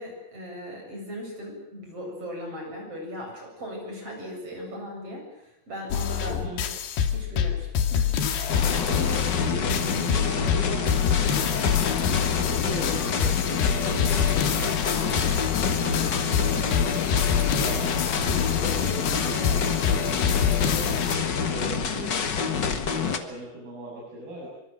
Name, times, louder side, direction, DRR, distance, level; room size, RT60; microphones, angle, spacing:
voice 1, 0.0-6.4 7.1-8.2, equal, 35° right, 1 dB, 8.7 m, -38 dB
sound 1, 5.9-21.2, left 8 dB, 90° left, 4.1 m, -26 dB
voice 2, 6.2-6.7 8.6-11.4 11.7-15.3 15.6-20.8 21.3-24.5, right 1 dB, 65° right, -5 dB, 9.6 m, -39 dB
sound 2, 8.5-23.2, left 6 dB, 70° left, 1.0 m, -27 dB
25.0 x 24.5 x 7.8 m, 0.84 s
omnidirectional pair, 4.6 m